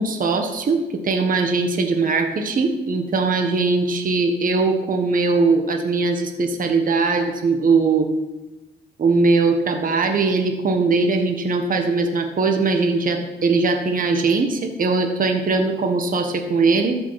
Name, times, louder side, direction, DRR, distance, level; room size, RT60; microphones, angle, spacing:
voice 1, 0.0-8.1 9.0-17.0, right 3 dB, 45° right, 5 dB, 1.5 m, -20 dB
14.0 x 6.1 x 5.9 m, 1.1 s
cardioid pair, 90°, 20 cm